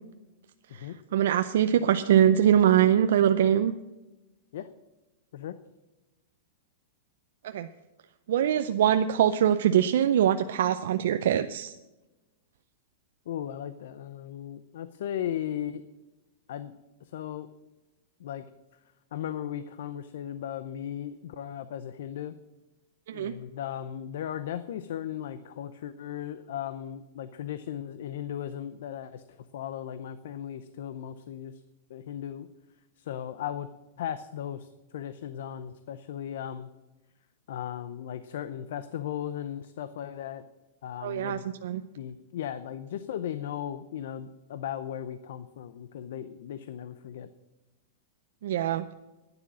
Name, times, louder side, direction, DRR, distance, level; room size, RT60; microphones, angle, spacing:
voice 1, 1.1-3.7 7.4-7.7 8.3-11.7 23.1-23.3 41.0-41.8 48.4-48.8, right 10 dB, 70° right, 9 dB, 0.5 m, -23 dB
voice 2, 13.3-15.8 16.5-16.7 17.0-17.5 18.2-18.4 19.1-22.3 23.1-31.6 31.9-32.5 33.0-33.7 34.0-36.7 37.5-40.4 40.8-41.5 42.0-47.3, left 10 dB, 70° left, 13 dB, 0.6 m, -36 dB
11.5 x 9.8 x 6.2 m, 1.1 s
supercardioid pair, 165°, 0 cm